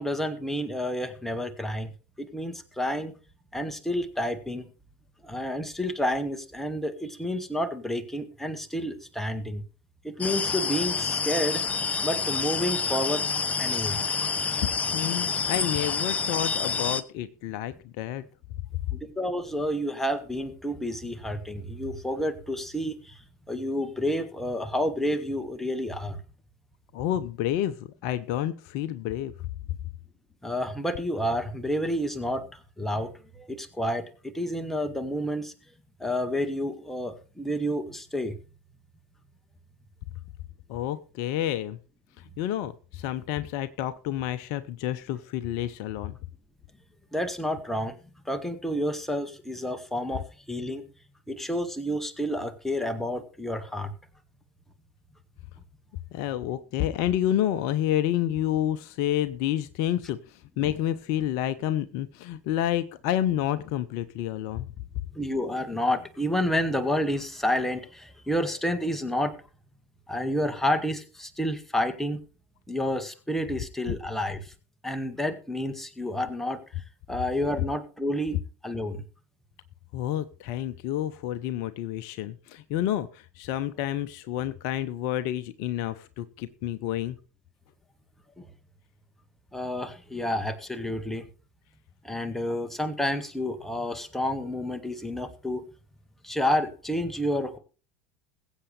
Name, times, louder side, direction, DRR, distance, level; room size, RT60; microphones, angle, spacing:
voice 1, 0.0-1.9 2.2-3.1 3.5-4.7 5.2-9.6 10.0-11.6 12.0-13.2 13.6-14.0 18.9-23.2 23.5-26.2 30.4-35.5 36.0-38.4 47.1-48.0 48.3-50.2 50.5-50.8 51.3-53.9 65.1-69.3 70.1-72.2 72.7-74.5 74.8-76.6 77.1-78.4 78.6-79.0 88.4-88.5 89.5-91.3 92.0-95.6 96.2-97.6, equal, 5° left, 7 dB, 1.8 m, -29 dB
sound 1, 10.2-17.0, left 5 dB, 20° left, 0.9 m, -28 dB
voice 2, 14.9-18.2 26.9-29.3 40.7-41.8 42.2-46.2 56.1-64.7 73.9-74.0 79.9-87.2, left 12 dB, 50° left, 13 dB, 0.8 m, -29 dB
21.5 x 8.2 x 3.3 m, 0.35 s
figure-of-eight pair, 75°, 7 cm